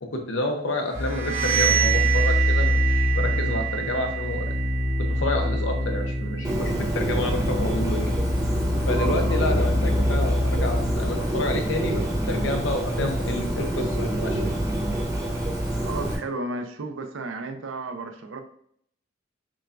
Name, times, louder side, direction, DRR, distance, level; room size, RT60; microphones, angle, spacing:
voice 1, 0.0-4.5 5.0-8.1 8.9-14.5, left 2 dB, 75° left, 3 dB, 0.8 m, -29 dB
sound 1, 0.9-11.2, left 1 dB, 35° right, 0.5 m, -25 dB
sound 2, 0.9-6.6, right 12 dB, 60° right, 1.6 m, -28 dB
Bird, 6.4-16.2, right 1 dB, 15° right, 1.0 m, -27 dB
voice 2, 8.9-9.4 15.8-18.4, right 3 dB, 90° right, 7 dB, 0.5 m, -33 dB
6.0 x 2.3 x 2.5 m, 0.65 s
head